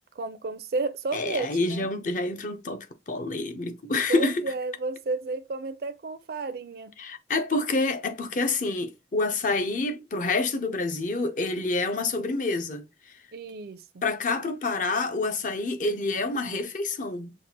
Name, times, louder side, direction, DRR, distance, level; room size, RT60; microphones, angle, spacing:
voice 1, 0.2-1.9 4.1-6.9 13.3-13.8, right 3 dB, 55° right, 0.4 m, -32 dB
voice 2, 1.1-4.4 7.0-13.2 14.0-17.3, left 3 dB, 45° left, 0.6 m, -28 dB
5.9 x 2.4 x 2.7 m
head